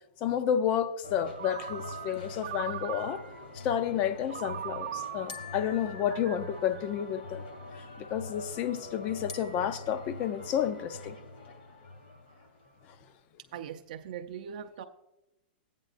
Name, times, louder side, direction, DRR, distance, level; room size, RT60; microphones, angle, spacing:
voice 1, 0.2-3.3 3.5-7.4 7.8-11.2, left 9 dB, 25° left, 0.5 m, -31 dB
sound 1, 1.0-13.0, left 2 dB, 70° left, 2.3 m, -45 dB
Ringtone, 1.4-3.5 4.3-7.6, right 10 dB, 85° right, 0.8 m, -41 dB
sound 2, 1.5-3.0 5.3-7.0 9.3-10.4, left 6 dB, 45° left, 0.9 m, -49 dB
voice 2, 13.5-14.8, right 8 dB, 55° right, 0.5 m, -40 dB
14.5 x 9.0 x 2.5 m
supercardioid pair, 170°, 5 cm